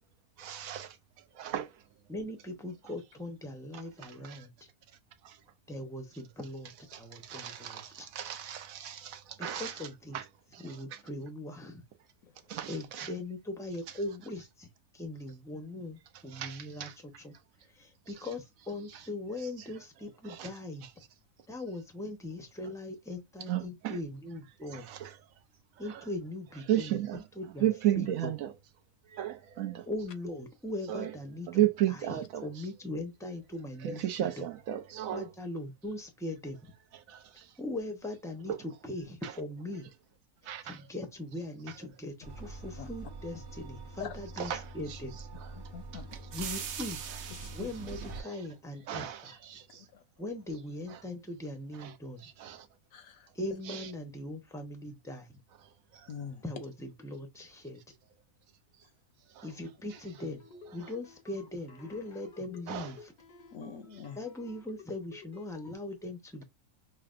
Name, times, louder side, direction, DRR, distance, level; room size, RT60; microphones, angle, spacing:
voice 1, 0.4-1.9 3.7-4.5 4.9-5.4 6.9-9.9 10.1-10.3 10.5-11.0 12.5-13.1 13.9-14.0 16.3-17.0 18.9-19.1 19.4-19.7 20.2-20.5 20.8-20.9 23.5-24.0 24.7-25.4 25.7-26.1 26.7-27.2 27.6-28.5 29.0-29.9 30.9-31.2 31.5-32.6 33.8-35.3 36.9-37.6 38.5-38.6 39.2-39.3 40.4-40.8 41.7-41.8 44.4-45.0 45.4-45.5 45.9-46.3 48.1-48.5 48.9-49.9 50.9-51.0 51.7-52.7 53.3-53.4 53.7-53.9 55.6-56.3 58.8-58.9 59.2-59.5 60.8-60.9 62.7-63.0 63.9-64.1, right 12 dB, 70° right, 0.9 m, -35 dB
voice 2, 2.1-4.5 5.7-8.1 9.4-10.2 10.6-11.8 12.7-14.7 14.9-16.9 17.2-20.9 21.5-24.9 25.8-27.0 27.4-27.7 27.9-28.3 29.9-31.5 32.1-34.4 35.1-36.7 37.6-38.5 38.8-39.9 40.4-45.1 46.3-47.0 47.5-49.1 50.2-52.2 53.3-55.4 56.4-57.8 59.4-63.1 64.2-66.4, left 1 dB, 5° left, 0.5 m, -40 dB
sound 1, 42.2-48.2, right 4 dB, 90° right, 1.3 m, -42 dB
voice 3, 45.6-46.1 47.6-47.7 49.7-50.0 52.9-53.6 56.1-56.4 63.5-64.2, left 7 dB, 75° left, 1.2 m, -43 dB
sound 2, 59.9-65.7, left 5 dB, 45° left, 0.7 m, -54 dB
5.7 x 2.2 x 2.5 m
omnidirectional pair, 1.6 m